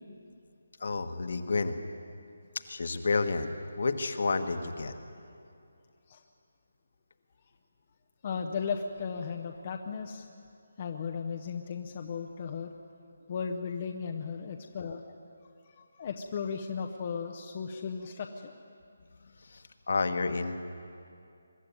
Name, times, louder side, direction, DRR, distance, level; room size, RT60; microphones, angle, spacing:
voice 1, 0.8-1.8 2.7-4.9 19.2-20.6, left 3 dB, 55° left, 8 dB, 1.4 m, -30 dB
voice 2, 8.2-10.3 10.8-12.7 13.3-15.2 15.6-18.5, left 6 dB, 30° left, 3 dB, 0.7 m, -36 dB
23.0 x 12.5 x 9.6 m, 2.5 s
hypercardioid pair, 175°, 0 cm